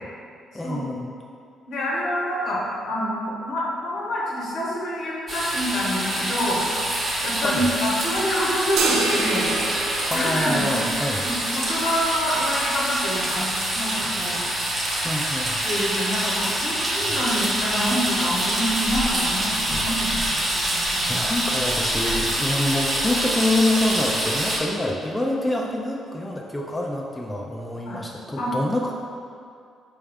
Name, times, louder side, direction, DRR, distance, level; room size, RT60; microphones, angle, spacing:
voice 1, 0.5-1.2 7.4-7.7 10.1-11.3 15.0-15.7 19.8-20.5 21.1-28.9, left 1 dB, 10° left, -2 dB, 0.3 m, -26 dB
voice 2, 1.7-3.2 3.5-6.6 7.2-9.5 10.1-14.4 15.6-21.2 27.8-28.0 28.4-28.5, equal, 70° left, -5 dB, 1.0 m, -27 dB
sound 1, 5.3-24.6, right 1 dB, 40° right, 0.8 m, -26 dB
sound 2, 8.8-11.3, right 3 dB, 80° right, 0.4 m, -27 dB
4.3 x 2.3 x 3.4 m, 2.4 s
cardioid pair, 90°, 0 cm